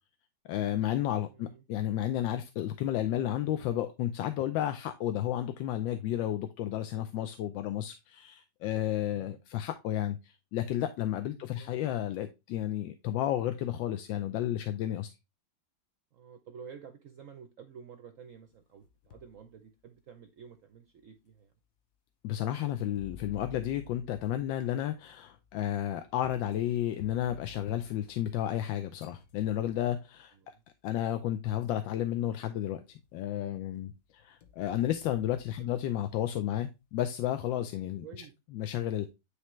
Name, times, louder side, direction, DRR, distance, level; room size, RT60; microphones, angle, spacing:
voice 1, 0.5-15.1 22.2-30.3 30.8-38.0 38.5-39.1, left 12 dB, 85° left, 1.3 m, -32 dB
voice 2, 1.3-1.7 9.0-9.4 11.3-11.7 16.1-21.5 30.3-30.6 35.6-35.8 38.0-38.3, right 7 dB, 65° right, 0.8 m, -51 dB
sound 1, 18.5-19.4 20.0-20.1 21.0-21.1 23.0-28.7 29.0-30.0 31.2-31.3 31.8-32.2 32.6-33.4 33.8-36.1, left 9 dB, 60° left, 1.0 m, -54 dB
9.7 x 3.3 x 3.0 m
omnidirectional pair, 2.0 m